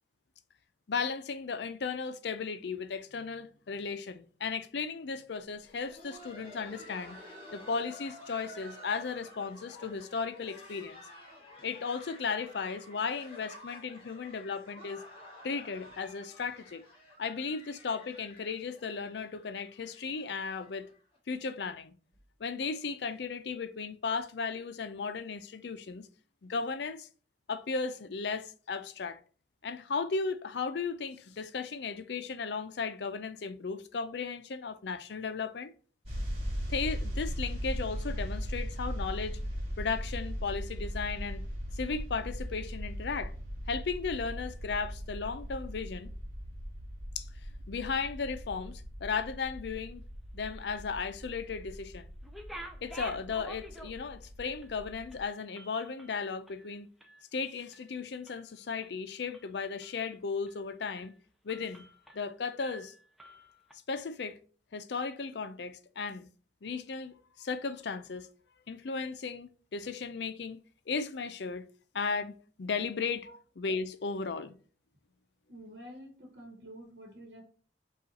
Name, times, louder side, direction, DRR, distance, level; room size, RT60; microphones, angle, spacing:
voice 1, 0.9-7.2 7.5-11.0 11.6-15.0 15.4-16.8 17.2-20.9 21.3-22.0 22.4-26.1 26.4-27.1 27.5-29.2 29.6-35.7 36.7-39.4 39.8-41.4 41.7-43.3 43.7-46.1 47.2-47.3 47.7-50.0 50.3-52.1 52.8-56.9 57.3-61.1 61.4-61.9 62.1-62.9 63.9-64.4 64.7-66.3 66.6-68.3 68.7-70.6 70.9-71.6 71.9-73.3 73.6-74.5, left 5 dB, 70° left, 0.5 m, -35 dB
Laughter, 5.6-21.2 21.4-21.5 22.1-22.2 22.8-23.0 24.1-24.2, left 1 dB, 30° left, 1.7 m, -51 dB
sound 1, 36.0-55.2, equal, 35° right, 1.5 m, -39 dB
sound 2, 52.2-54.2 54.6-54.7 55.1-57.3 57.6-57.9 58.3-58.9 59.3-60.1 60.5-60.6 61.0-61.2 61.5-62.3 62.6-63.7, equal, ahead, 0.5 m, -49 dB
voice 2, 75.5-77.4, equal, 65° right, 1.1 m, -48 dB
5.3 x 2.4 x 4.0 m
head